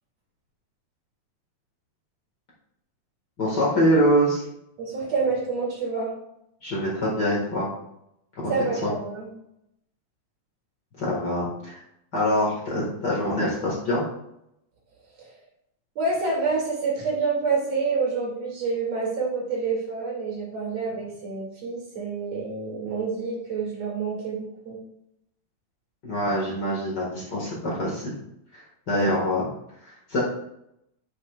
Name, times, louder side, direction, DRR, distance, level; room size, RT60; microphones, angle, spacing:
voice 1, 3.4-4.4 6.6-7.7 8.4-8.5 8.8-8.9 10.9-11.8 12.1-14.1 26.0-28.1 28.5-28.6 28.9-29.5 30.1-30.2, equal, 40° left, -5 dB, 2.0 m, -24 dB
voice 2, 4.8-6.1 8.5-9.3 15.2-15.4 16.0-24.8 28.9-29.0, right 4 dB, 60° right, -4 dB, 3.5 m, -28 dB
10.0 x 7.7 x 2.4 m, 0.80 s
omnidirectional pair, 3.3 m